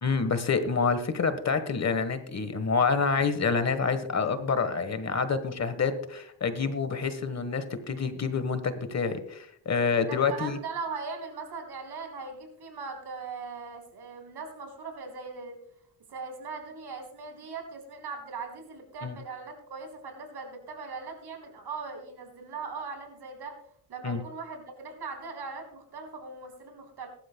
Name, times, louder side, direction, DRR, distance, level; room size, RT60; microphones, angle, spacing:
voice 1, 0.0-10.6 19.0-19.2 24.0-24.2, left 5 dB, 40° left, 10 dB, 1.3 m, -27 dB
voice 2, 10.0-15.6 16.1-23.6 23.9-27.1, right 4 dB, 70° right, 3 dB, 3.7 m, -39 dB
21.0 x 12.0 x 2.2 m, 0.66 s
cardioid pair, 115°, 41 cm